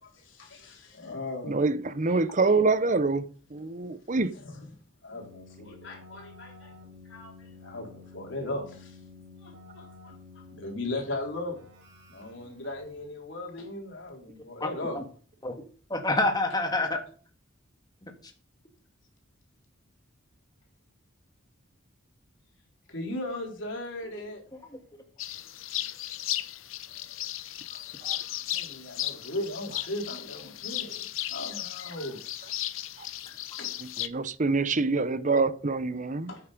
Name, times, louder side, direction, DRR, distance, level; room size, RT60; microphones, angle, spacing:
voice 1, 0.2-1.6 4.4-4.6 5.0-6.7 7.1-7.3 7.6-9.0 9.4-11.6 12.1-15.0 22.9-24.4 28.5-32.2 33.6-33.7 36.3-36.4, left 2 dB, 65° left, 4.0 m, -37 dB
voice 2, 1.4-4.3 28.0-28.2 33.8-36.3, right 3 dB, 40° right, 0.8 m, -26 dB
Keyboard (musical), 5.1-13.2, left 3 dB, 60° right, 4.2 m, -51 dB
voice 3, 14.6-15.0 15.4-15.6 15.9-17.0 18.0-18.3 24.5-25.0, left 2 dB, 20° left, 1.7 m, -29 dB
sound 1, 25.2-34.1, left 13 dB, 85° left, 0.8 m, -35 dB
9.5 x 8.6 x 5.1 m
head